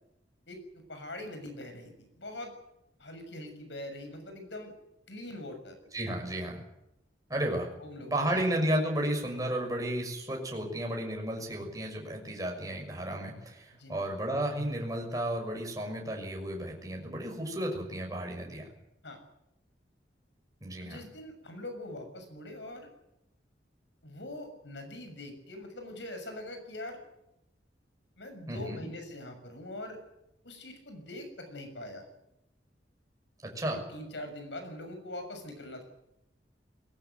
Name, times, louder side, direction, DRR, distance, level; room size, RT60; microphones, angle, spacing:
voice 1, 0.5-2.5 3.0-4.7 5.1-5.8 7.8-8.7 13.7-14.1 19.0-19.2 20.8-22.9 24.0-27.0 28.2-30.0 30.4-32.0 33.6-35.8, left 1 dB, 75° left, 6 dB, 6.7 m, -43 dB
voice 2, 5.9-6.6 7.3-7.7 8.1-18.7 20.6-21.0 28.5-28.9 33.4-33.8, right 1 dB, 20° right, 1 dB, 6.2 m, -33 dB
21.0 x 18.5 x 9.5 m, 0.85 s
head